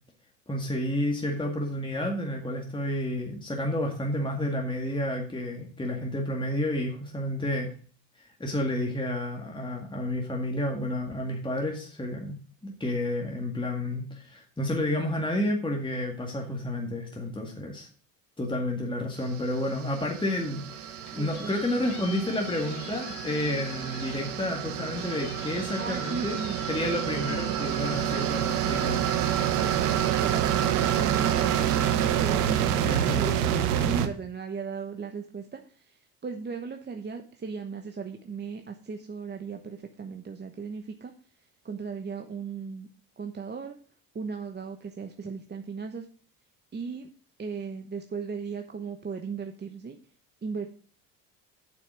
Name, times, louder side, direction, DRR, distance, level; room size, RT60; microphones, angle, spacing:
voice 1, 0.5-7.7 8.2-12.4 12.6-17.9 18.4-26.4 26.7-29.0 32.9-33.2, left 1 dB, 10° left, 1 dB, 2.0 m, -30 dB
sound 1, 19.4-34.1, right 10 dB, 85° right, 1.0 m, -28 dB
sound 2, 20.8-30.4, left 6 dB, 65° left, 2.3 m, -46 dB
voice 2, 21.1-21.8 25.8-26.6 27.3-27.6 29.6-41.1 41.6-42.9 43.2-43.8 44.1-46.1 46.7-47.1 47.4-50.0 50.4-50.7, right 5 dB, 20° right, 5 dB, 1.1 m, -37 dB
7.9 x 5.9 x 6.1 m, 0.41 s
hypercardioid pair, 75°, 45 cm